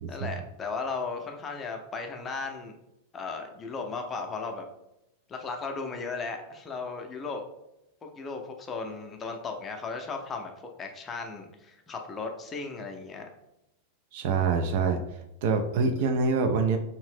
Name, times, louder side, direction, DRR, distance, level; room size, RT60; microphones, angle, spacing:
voice 1, 0.1-2.7 3.1-4.6 5.3-7.4 8.0-13.3, left 4 dB, 20° left, 3 dB, 0.5 m, -36 dB
voice 2, 14.1-15.0 15.4-16.8, right 4 dB, 50° right, 6 dB, 0.3 m, -25 dB
2.8 x 2.6 x 3.4 m, 0.86 s
figure-of-eight pair, 90°, 0 cm